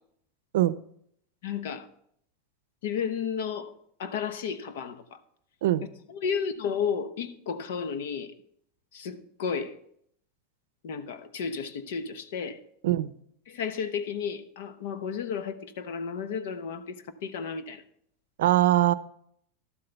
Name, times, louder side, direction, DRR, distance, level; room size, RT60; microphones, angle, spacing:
voice 1, 1.4-1.8 2.8-3.7 4.0-5.0 6.1-8.3 8.9-9.8 10.8-12.6 13.5-17.8, left 6 dB, 70° left, 0.9 m, -32 dB
voice 2, 18.4-18.9, right 14 dB, 80° right, 0.5 m, -22 dB
12.0 x 8.0 x 3.4 m
supercardioid pair, 160°, 0 cm